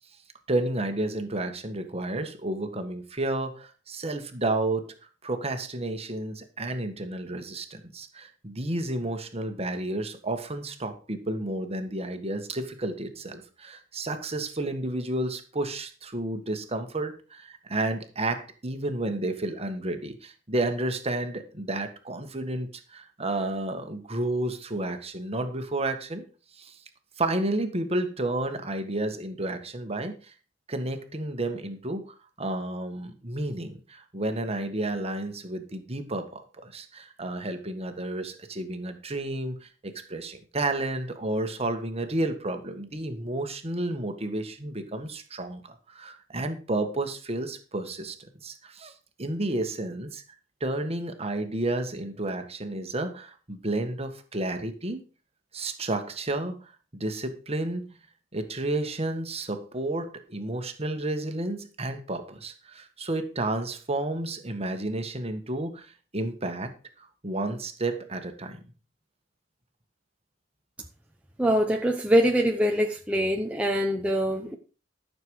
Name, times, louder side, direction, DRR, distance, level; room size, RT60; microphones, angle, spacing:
voice 1, 0.5-4.9 5.2-26.2 26.5-26.8 27.2-30.3 30.7-48.9 49.2-50.2 50.6-55.0 55.5-57.9 58.3-68.6, right 2 dB, 30° right, 1.6 m, -31 dB
voice 2, 71.4-74.6, equal, 5° right, 0.9 m, -24 dB
13.5 x 6.9 x 4.8 m
head